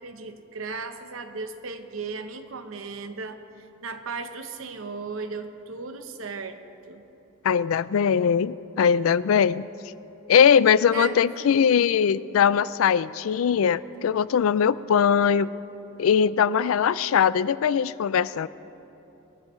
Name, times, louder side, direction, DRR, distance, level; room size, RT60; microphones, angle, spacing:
voice 1, 0.0-6.6 6.9-7.0 10.9-11.5, right 4 dB, 75° right, 8 dB, 0.9 m, -36 dB
voice 2, 7.4-9.7 10.3-15.5 16.0-18.5, left 7 dB, 80° left, 18 dB, 0.4 m, -21 dB
22.5 x 13.5 x 3.2 m, 2.9 s
head